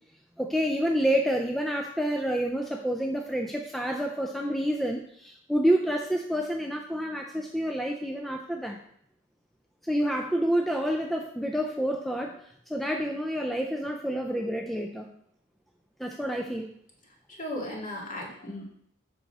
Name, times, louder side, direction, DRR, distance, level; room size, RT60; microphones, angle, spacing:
voice 1, 0.4-8.8 9.8-12.4 12.7-15.1 16.0-16.7, equal, ahead, 1 dB, 0.4 m, -28 dB
voice 2, 17.3-18.7, left 1 dB, 40° left, -3 dB, 2.1 m, -36 dB
7.5 x 5.9 x 4.2 m, 0.68 s
head